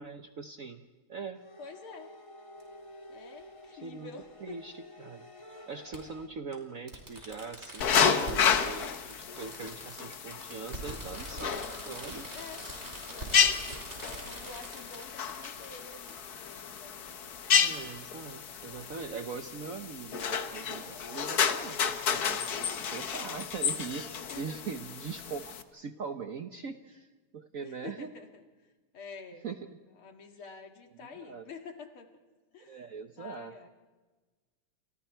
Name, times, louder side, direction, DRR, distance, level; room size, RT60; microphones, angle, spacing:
voice 1, 0.0-1.4 3.7-4.1 4.4-12.3 17.5-27.1 27.3-28.1 29.4-29.8 31.0-31.5 32.6-33.7, right 5 dB, 55° right, 7 dB, 1.0 m, -42 dB
sound 1, 1.3-6.3, left 1 dB, 15° left, 1.7 m, -51 dB
voice 2, 1.6-2.1 3.1-4.6 12.3-12.6 13.0-13.8 14.3-17.4 24.2-24.6 27.6-28.4 28.9-29.4 30.0-32.1 32.5-32.8 33.2-33.7, left 5 dB, 75° left, 4 dB, 2.7 m, -48 dB
Fireworks, 2.6-2.7 4.2-4.3 5.9-6.0 6.5-6.6 6.9-15.8 16.1-16.2, right 1 dB, 30° right, 4.9 m, -44 dB
sound 2, 7.8-25.6, left 7 dB, 50° left, 1.4 m, -31 dB
30.0 x 27.5 x 4.5 m, 1.3 s
omnidirectional pair, 2.4 m